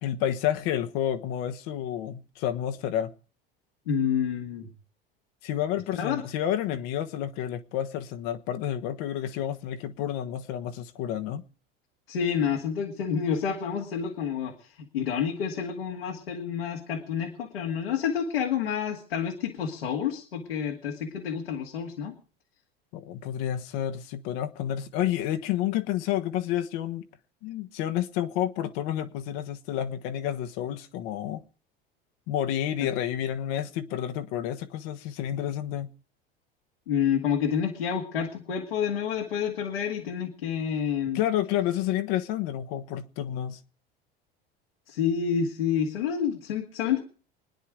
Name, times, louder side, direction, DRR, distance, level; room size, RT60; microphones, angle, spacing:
voice 1, 0.0-3.1 5.4-11.4 22.9-27.0 27.4-31.4 32.3-35.9 41.1-43.6, left 11 dB, 65° left, 1.3 m, -30 dB
voice 2, 3.9-4.7 6.0-6.2 12.1-22.2 32.8-32.9 36.9-41.2 44.9-47.0, left 7 dB, 85° left, 2.2 m, -29 dB
24.5 x 10.0 x 4.9 m
hypercardioid pair, 80°, 29 cm